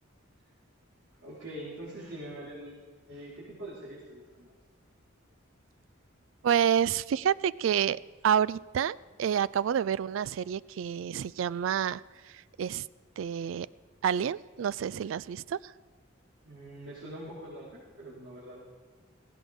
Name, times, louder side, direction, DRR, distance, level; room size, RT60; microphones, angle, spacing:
voice 1, 1.2-2.7 3.1-4.5 16.4-18.6, right 1 dB, 85° right, -10 dB, 4.0 m, -43 dB
voice 2, 6.4-12.9 13.2-13.7 14.0-15.7, right 8 dB, 65° right, 20 dB, 0.3 m, -29 dB
17.0 x 16.0 x 3.6 m, 1.4 s
head